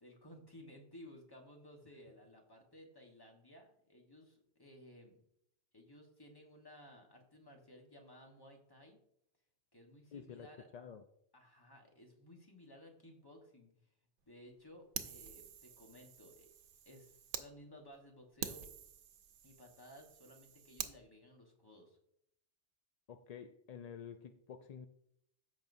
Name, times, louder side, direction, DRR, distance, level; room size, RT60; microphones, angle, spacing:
voice 1, 0.0-5.2 5.7-9.0 9.7-10.7 11.3-13.9 14.3-16.5 16.8-18.7 19.4-22.0, left 1 dB, 20° left, 1.3 m, -57 dB
voice 2, 10.1-10.5 10.7-11.0 23.1-24.9, left 7 dB, 60° left, 0.4 m, -49 dB
Fire, 14.9-17.5 17.9-18.0 18.4-21.0, right 8 dB, 85° right, 1.0 m, -47 dB
14.0 x 5.4 x 2.7 m
omnidirectional pair, 1.2 m